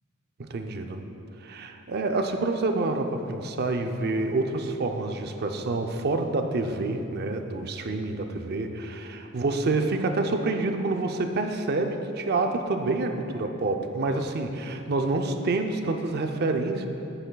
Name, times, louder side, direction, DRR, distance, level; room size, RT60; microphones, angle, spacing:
voice 1, 0.4-1.0 1.4-16.9, right 2 dB, 50° right, 5 dB, 0.5 m, -27 dB
11.5 x 7.7 x 2.3 m, 2.8 s
head